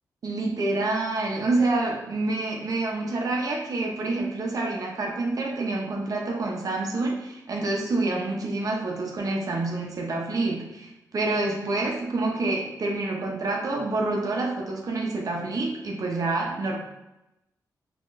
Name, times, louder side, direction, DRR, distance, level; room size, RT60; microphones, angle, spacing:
voice 1, 0.2-16.8, right 2 dB, 55° right, 0 dB, 0.7 m, -27 dB
3.7 x 2.9 x 2.5 m, 0.93 s
cardioid pair, 85°, 7 cm